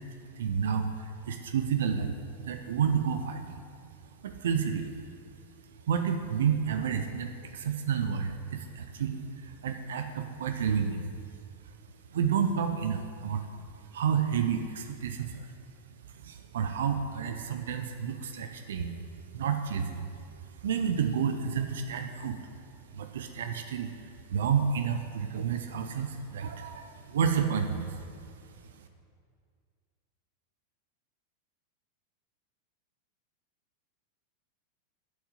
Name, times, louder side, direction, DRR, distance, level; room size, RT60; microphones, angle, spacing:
voice 1, 0.3-2.1 2.4-3.6 4.2-4.9 5.9-11.1 12.1-13.4 13.9-15.5 16.2-18.9 19.3-20.0 20.6-22.4 22.9-28.0, right 7 dB, 60° right, 7 dB, 0.6 m, -30 dB
8.0 x 6.4 x 8.0 m, 2.2 s
figure-of-eight pair, 90°, 0 cm